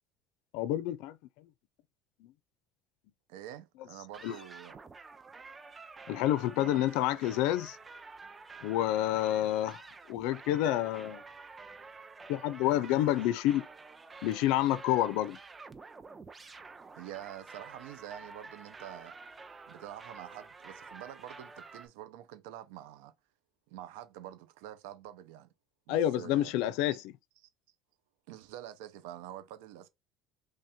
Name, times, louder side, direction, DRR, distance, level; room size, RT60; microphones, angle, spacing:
voice 1, 0.5-1.2 4.2-4.3 6.1-7.8 8.6-9.8 10.1-11.2 12.3-13.6 14.2-15.4 25.9-27.1, left 13 dB, 75° left, 0.4 m, -28 dB
voice 2, 3.3-4.8 6.6-6.9 12.7-13.3 17.0-19.1 19.7-23.1 23.7-25.5 25.9-26.5 26.9-27.0 27.4-27.5 28.3-29.9, right 12 dB, 85° right, 0.5 m, -47 dB
sound 1, 4.1-21.9, right 4 dB, 20° right, 0.5 m, -50 dB
3.3 x 2.7 x 3.5 m
supercardioid pair, 105°, 0 cm